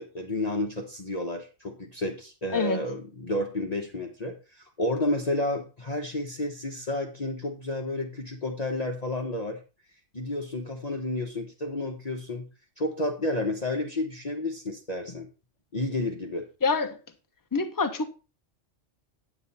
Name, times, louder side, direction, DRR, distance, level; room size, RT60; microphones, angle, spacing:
voice 1, 0.0-9.6 10.1-12.5 12.8-15.3 15.7-16.5, left 1 dB, 35° left, 1.2 m, -31 dB
voice 2, 16.6-17.0 17.5-18.1, left 4 dB, 20° left, 0.9 m, -25 dB
9.5 x 8.1 x 4.2 m
omnidirectional pair, 1.3 m